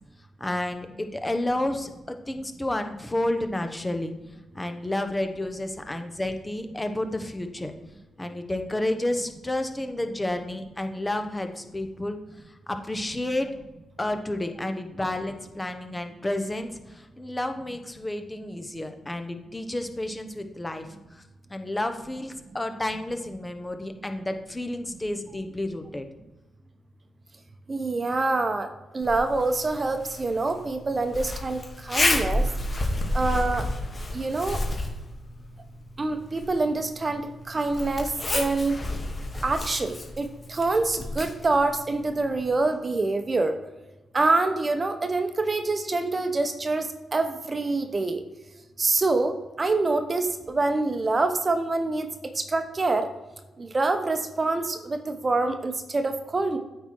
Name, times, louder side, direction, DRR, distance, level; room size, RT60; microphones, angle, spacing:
voice 1, 0.4-4.1 4.5-7.7 8.2-12.2 12.7-13.5 14.0-16.7 16.9-20.8 21.5-26.1, left 1 dB, 20° left, 7 dB, 1.1 m, -30 dB
voice 2, 27.7-28.7 28.9-32.4 33.1-33.6 34.1-34.6 36.0-37.2 37.5-38.8 39.4-43.5 44.1-46.9 47.1-48.2 48.8-52.1 52.4-53.1 53.6-56.6, right 3 dB, 40° right, 7 dB, 1.0 m, -26 dB
Zipper (clothing), 29.0-42.6, left 1 dB, 35° left, 1.9 m, -31 dB
8.8 x 4.3 x 4.7 m, 1.1 s
supercardioid pair, 50°, 0 cm